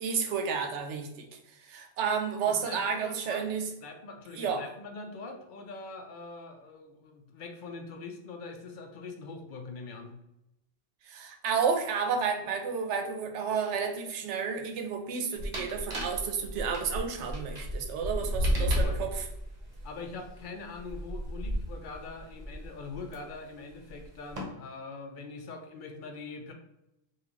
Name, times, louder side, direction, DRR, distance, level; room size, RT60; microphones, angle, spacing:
voice 1, 0.0-1.3 1.6-3.7 4.4-4.7 11.1-19.1, right 6 dB, 80° right, 5 dB, 0.9 m, -31 dB
voice 2, 2.5-3.5 3.8-10.1 18.4-19.0 19.8-26.5, left 3 dB, 55° left, 4 dB, 0.6 m, -43 dB
sound 1, 15.4-23.1 23.9-24.4, equal, 45° right, 0.8 m, -33 dB
3.7 x 2.4 x 2.9 m, 0.88 s
omnidirectional pair, 1.2 m